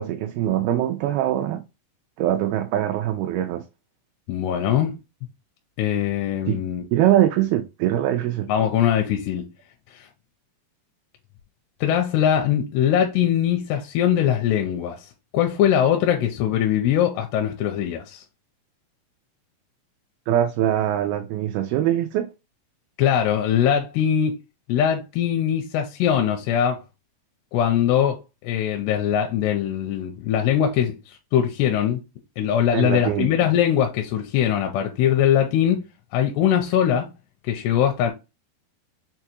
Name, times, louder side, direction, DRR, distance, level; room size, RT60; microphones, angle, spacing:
voice 1, 0.0-1.6 2.2-3.6 6.5-6.6 6.9-8.5 20.3-22.3 32.7-33.3, right 12 dB, 85° right, 2.2 m, -22 dB
voice 2, 4.3-5.0 5.8-6.8 8.5-9.5 9.9-10.1 11.8-18.2 23.0-24.4 24.7-26.8 27.5-32.0 32.4-35.9 36.1-37.1 37.4-38.1, left 9 dB, 85° left, 2.7 m, -21 dB
6.5 x 2.3 x 2.9 m
omnidirectional pair, 4.7 m